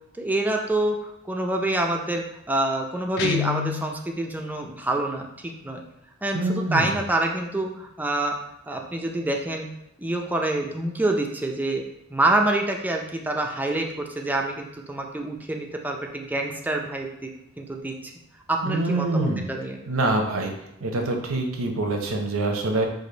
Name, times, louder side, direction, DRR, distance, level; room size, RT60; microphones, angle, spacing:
voice 1, 0.2-5.8 6.2-8.3 8.7-9.7 10.0-11.8 12.1-17.3 17.6-18.0 18.5-19.8, right 2 dB, 10° right, 2 dB, 0.5 m, -26 dB
Guitar, 3.2-4.0, left 9 dB, 55° left, 0.3 m, -27 dB
voice 2, 6.3-7.0 18.6-19.5 19.9-20.5 20.8-22.9, right 2 dB, 75° right, 3 dB, 0.8 m, -25 dB
4.9 x 2.6 x 3.9 m, 0.85 s
head